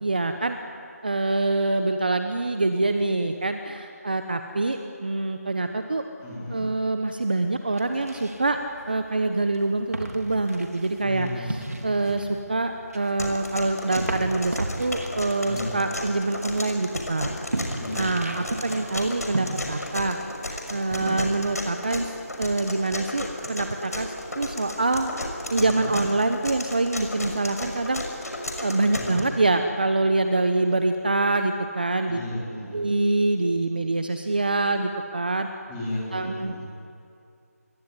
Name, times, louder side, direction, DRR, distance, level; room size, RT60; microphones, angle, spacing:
voice 1, 0.0-0.6 1.0-6.0 6.5-8.6 8.9-17.3 18.0-20.2 20.5-22.1 22.4-24.1 24.4-25.1 25.5-28.0 28.6-32.2 32.7-35.5 36.1-36.6, right 2 dB, 35° right, 7 dB, 1.0 m, -25 dB
voice 2, 6.2-6.6 11.0-11.6 15.4-15.7 17.8-18.3 21.0-21.1 25.6-25.9 28.9-29.2 32.1-32.8 35.7-36.6, left 1 dB, 5° left, -8 dB, 4.0 m, -34 dB
sound 1, 7.7-19.9, right 1 dB, 70° right, 3.5 m, -36 dB
sound 2, 13.2-29.2, left 1 dB, 70° left, 6.3 m, -34 dB
26.5 x 22.5 x 9.8 m, 2.6 s
figure-of-eight pair, 175°, 9 cm